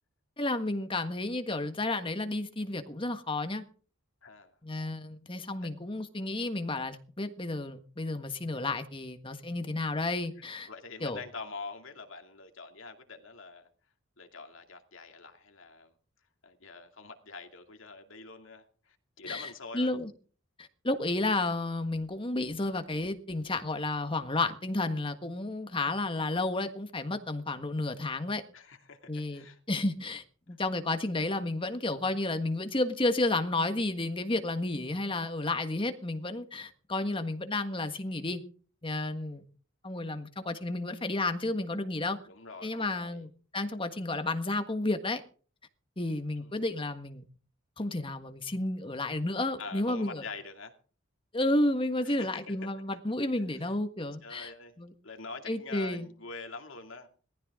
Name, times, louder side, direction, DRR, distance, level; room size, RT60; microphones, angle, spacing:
voice 1, 0.4-3.6 4.6-10.7 11.0-11.2 19.3-20.1 20.6-28.4 29.1-38.4 38.8-39.4 39.8-42.2 42.6-45.2 46.0-47.3 47.8-50.2 51.3-54.5 54.8-54.9 55.5-56.1, left 2 dB, 25° left, 1.5 m, -32 dB
voice 2, 4.2-4.5 10.5-13.7 14.2-15.9 16.4-19.9 28.5-29.6 42.3-43.3 46.4-46.6 49.6-50.7 52.1-52.6 53.5-53.7 54.2-54.7 55.0-57.1, left 4 dB, 65° left, 2.5 m, -45 dB
19.5 x 14.5 x 3.7 m
head